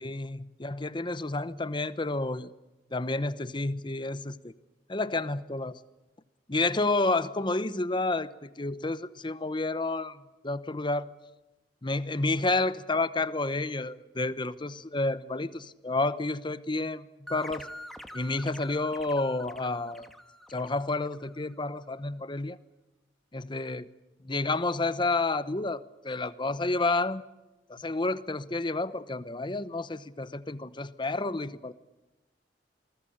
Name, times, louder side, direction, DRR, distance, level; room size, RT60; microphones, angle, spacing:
voice 1, 0.0-2.5 2.9-4.5 4.9-5.8 6.5-11.1 11.8-17.7 18.1-20.1 20.5-22.6 23.3-23.9 24.2-27.2 27.7-31.7, left 2 dB, 25° left, 14 dB, 0.9 m, -30 dB
sound 1, 17.3-21.6, equal, ahead, 1.6 m, -46 dB
28.0 x 20.0 x 8.8 m, 1.0 s
head